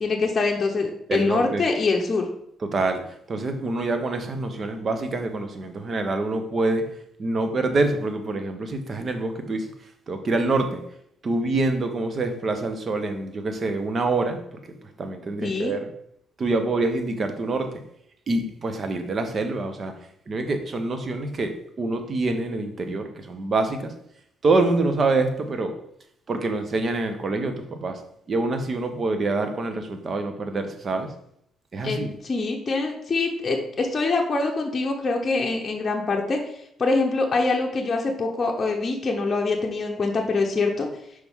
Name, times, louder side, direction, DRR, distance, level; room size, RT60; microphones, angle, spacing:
voice 1, 0.0-2.3 15.4-15.7 31.8-36.4 36.8-40.9, left 3 dB, 35° left, 0 dB, 0.9 m, -24 dB
voice 2, 1.1-1.7 2.6-6.9 7.2-9.7 10.1-10.8 11.2-14.6 15.0-15.9 16.4-17.7 18.3-19.9 20.3-23.9 24.4-25.7 26.3-28.0 28.3-31.1 31.7-32.1, right 2 dB, 40° right, 7 dB, 0.9 m, -26 dB
5.9 x 4.8 x 3.6 m, 0.71 s
cardioid pair, 90°, 0 cm